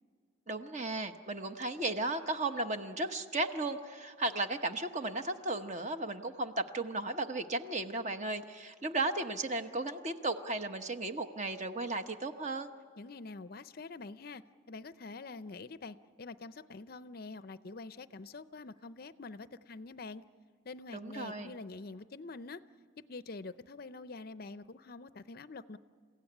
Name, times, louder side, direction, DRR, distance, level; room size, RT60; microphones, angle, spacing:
voice 1, 0.5-12.7 20.9-21.5, right 2 dB, 35° right, 8 dB, 1.0 m, -35 dB
voice 2, 13.0-14.4 14.7-20.2 20.6-22.6 23.0-25.8, left 3 dB, 45° left, 13 dB, 0.5 m, -46 dB
29.5 x 16.0 x 10.0 m, 2.2 s
head